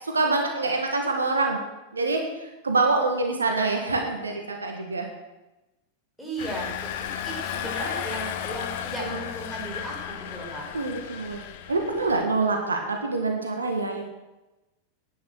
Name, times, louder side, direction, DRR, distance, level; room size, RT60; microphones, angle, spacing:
voice 1, 0.0-1.6 1.9-2.3 2.6-5.1 9.0-9.1 10.7-11.4 11.7-14.0, right 3 dB, 75° right, 3 dB, 1.8 m, -25 dB
voice 2, 6.2-10.6, right 1 dB, ahead, -3 dB, 5.1 m, -36 dB
Engine, 6.4-12.2, left 9 dB, 50° left, 1.0 m, -34 dB
11.0 x 9.4 x 6.6 m, 1.0 s
figure-of-eight pair, 90°, 0 cm